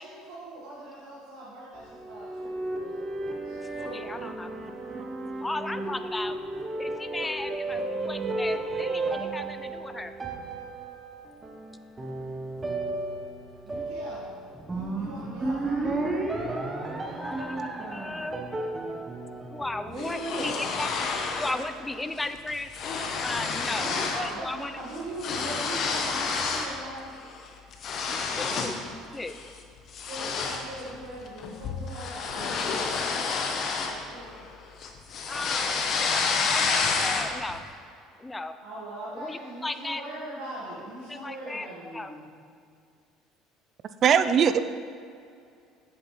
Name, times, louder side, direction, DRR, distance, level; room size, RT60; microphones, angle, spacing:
voice 1, 0.0-3.0 3.4-4.3 13.6-14.3 14.6-16.0 19.8-20.7 23.7-27.1 29.9-33.3 33.8-34.3 38.6-42.3, right 1 dB, 75° right, -7 dB, 1.5 m, -40 dB
sound 1, 1.8-20.3, right 2 dB, 25° right, 0.9 m, -33 dB
voice 2, 3.9-4.5 5.4-6.4 6.8-10.1 17.2-18.4 19.5-20.9 21.3-22.7 23.2-24.7 28.3-28.8 29.1-29.4 35.3-36.2 36.5-37.6 38.2-38.5 39.1-40.0 41.1-41.7 41.9-42.1, left 2 dB, 15° left, 10 dB, 0.5 m, -35 dB
sound 2, 20.0-21.6 22.0-22.2 22.5-24.3 24.6-26.8 27.2-28.8 29.3-29.5 29.9-34.5 34.8-37.5, left 4 dB, 50° left, 0.9 m, -29 dB
voice 3, 44.0-44.6, right 8 dB, 50° right, 11 dB, 0.4 m, -19 dB
8.0 x 7.7 x 3.1 m, 2.3 s
hypercardioid pair, 80°, 0 cm